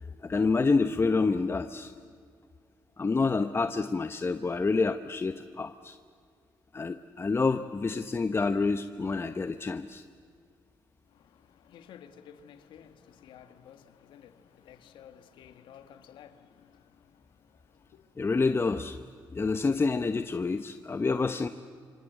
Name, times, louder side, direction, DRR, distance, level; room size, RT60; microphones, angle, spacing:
voice 1, 0.0-1.9 3.0-6.0 6.7-10.0 18.2-19.0 19.3-21.5, left 4 dB, 30° left, 9 dB, 0.9 m, -28 dB
voice 2, 11.1-18.1, left 9 dB, 85° left, 10 dB, 1.7 m, -54 dB
28.0 x 26.0 x 8.1 m, 2.1 s
cardioid pair, 80°, 8 cm